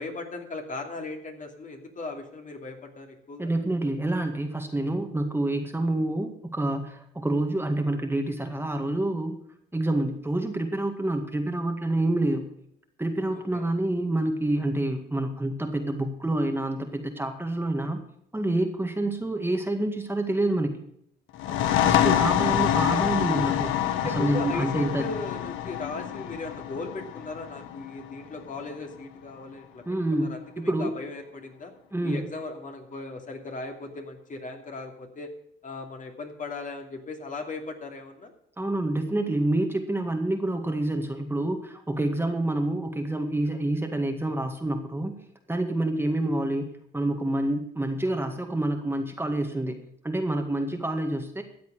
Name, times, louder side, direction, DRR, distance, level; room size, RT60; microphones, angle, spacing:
voice 1, 0.0-3.5 13.5-13.7 21.4-21.8 23.9-29.8 30.2-31.7 32.0-35.3 35.6-38.3 46.0-46.1, left 3 dB, 40° left, 3 dB, 2.7 m, -38 dB
voice 2, 3.4-9.4 9.7-12.5 13.0-18.0 18.3-20.9 21.8-25.1 29.9-30.9 31.9-32.3 38.6-45.1 45.5-49.8 50.0-51.4, right 1 dB, 10° right, 4 dB, 1.9 m, -27 dB
sound 1, 21.4-28.8, left 11 dB, 90° left, 1.2 m, -26 dB
14.0 x 8.1 x 6.5 m, 0.70 s
cardioid pair, 90°, 20 cm